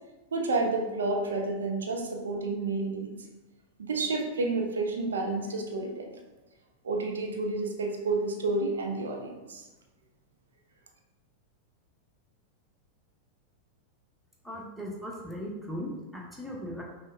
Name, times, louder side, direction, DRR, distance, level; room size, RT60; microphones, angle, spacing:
voice 1, 0.3-3.1 3.8-6.1 6.8-9.6, right 3 dB, 65° right, 2 dB, 0.5 m, -30 dB
voice 2, 14.4-16.8, equal, ahead, -2 dB, 0.7 m, -38 dB
5.3 x 2.1 x 2.5 m, 1.1 s
figure-of-eight pair, 90°, 0 cm